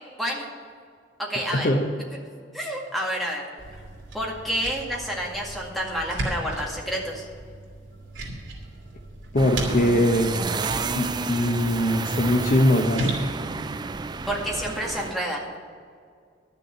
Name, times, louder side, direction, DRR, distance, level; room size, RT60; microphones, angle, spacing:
voice 1, 1.2-1.7 2.5-3.5 4.1-7.3 14.3-15.5, equal, ahead, -3 dB, 2.0 m, -29 dB
sound 1, 3.6-14.8, right 1 dB, 85° right, 2.8 m, -36 dB
voice 2, 9.3-10.3 10.9-13.1, left 1 dB, 45° left, 3 dB, 0.9 m, -21 dB
sound 2, 9.4-15.1, right 4 dB, 25° right, 0.3 m, -31 dB
11.0 x 6.8 x 8.0 m, 2.2 s
head